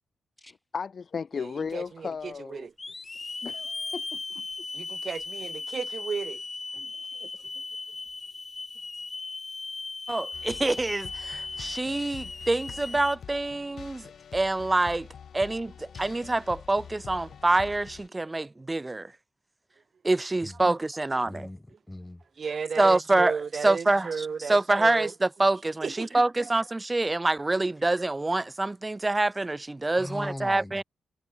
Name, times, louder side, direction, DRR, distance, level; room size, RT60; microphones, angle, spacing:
voice 1, 0.7-2.7 3.4-4.4, left 5 dB, 50° left, 0.9 m, -35 dB
voice 2, 1.4-2.7 4.7-6.4 6.7-6.9 7.2-7.3 22.4-25.1 25.8-26.5, right 6 dB, 50° right, 1.5 m, -34 dB
Hiss / Alarm, 1.7-1.8 2.8-13.2, left 3 dB, 30° left, 0.5 m, -37 dB
voice 3, 10.1-15.1 15.3-19.1 20.0-21.5 22.8-23.3 23.6-30.8, right 2 dB, 20° right, 0.7 m, -26 dB
sound 1, 10.3-18.1, left 7 dB, 65° left, 1.3 m, -46 dB
voice 4, 21.2-22.2 29.9-30.8, left 1 dB, 10° left, 4.2 m, -40 dB
cardioid pair, 90°, 0 cm